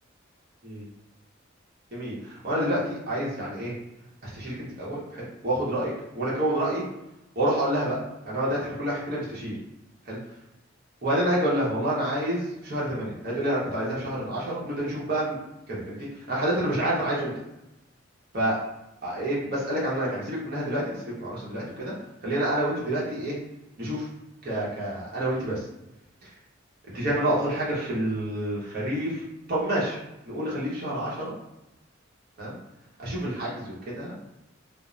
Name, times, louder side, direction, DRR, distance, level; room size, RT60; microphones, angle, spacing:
voice 1, 1.9-3.8 4.2-6.8 7.4-8.0 8.2-9.5 10.1-10.2 11.0-15.4 15.7-17.3 18.3-18.6 19.0-21.9 22.2-23.3 23.8-24.1 24.4-25.6 26.9-29.2 29.5-30.0 30.3-31.3 32.4-32.6 33.0-34.2, right 1 dB, 50° right, -7 dB, 0.8 m, -28 dB
2.4 x 2.0 x 3.1 m, 0.92 s
head